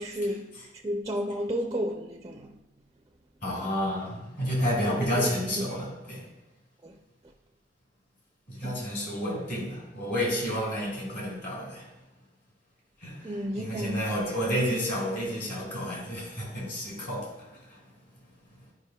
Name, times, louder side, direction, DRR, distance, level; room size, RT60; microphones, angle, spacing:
voice 1, 0.0-2.6 4.9-5.3 5.6-5.7 6.8-7.0 8.6-8.9 13.2-14.1, equal, 20° right, 0.4 m, -32 dB
voice 2, 3.4-6.3 8.5-11.9 13.0-17.8, equal, 55° left, 2.5 m, -30 dB
10.5 x 5.0 x 2.2 m
head